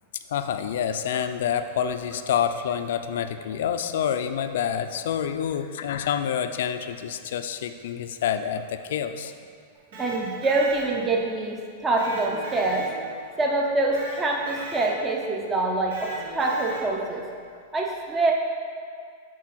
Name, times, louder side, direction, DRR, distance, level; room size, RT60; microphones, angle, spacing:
voice 1, 0.3-9.3, left 8 dB, 70° left, 9 dB, 0.4 m, -27 dB
Electric guitar, 9.7-11.3 12.0-13.4 13.9-15.2 15.9-17.1, right 1 dB, 75° right, 1.3 m, -39 dB
voice 2, 9.9-12.9 13.4-17.2 17.7-18.3, right 2 dB, 20° right, 0 dB, 0.7 m, -25 dB
6.3 x 4.2 x 4.2 m, 2.2 s
hypercardioid pair, 120°, 0 cm